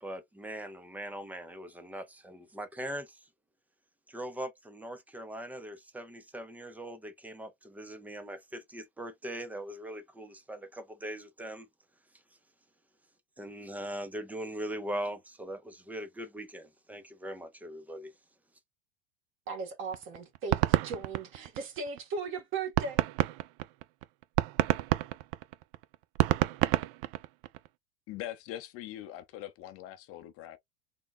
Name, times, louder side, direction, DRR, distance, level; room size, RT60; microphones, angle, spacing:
voice 1, 0.0-3.2 4.1-11.7 13.4-18.1, right 1 dB, 5° right, 0.6 m, -41 dB
voice 2, 19.5-23.0, right 4 dB, 40° right, 1.7 m, -37 dB
sound 1, 19.9-22.0 22.4-22.5 22.8-27.7, right 17 dB, 60° right, 0.5 m, -28 dB
voice 3, 28.1-30.6, left 13 dB, 45° left, 0.8 m, -42 dB
3.6 x 2.3 x 4.1 m
supercardioid pair, 125°, 33 cm